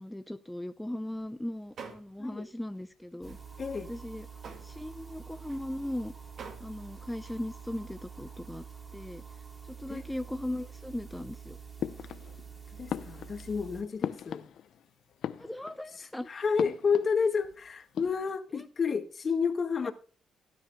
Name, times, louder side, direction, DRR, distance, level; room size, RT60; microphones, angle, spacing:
voice 1, 0.0-3.4 3.9-4.3 4.5-6.1 6.6-8.6 8.9-9.2 9.7-11.6 15.4-16.3 18.5-18.6, left 1 dB, 5° left, 0.6 m, -38 dB
sound 1, 1.1-1.3 1.6-2.5 2.7-2.9 3.2-7.9, right 5 dB, 55° right, 2.1 m, -49 dB
sound 2, 3.2-13.8, right 6 dB, 20° right, 3.7 m, -47 dB
voice 2, 3.6-3.9 9.9-10.0 12.7-14.5 16.0-19.9, left 5 dB, 45° left, 1.7 m, -30 dB
sound 3, 11.8-12.5 12.9-14.9 15.1-16.0 16.6-17.6 17.8-18.4, left 9 dB, 70° left, 0.6 m, -38 dB
17.0 x 9.7 x 2.3 m
cardioid pair, 90°, 0 cm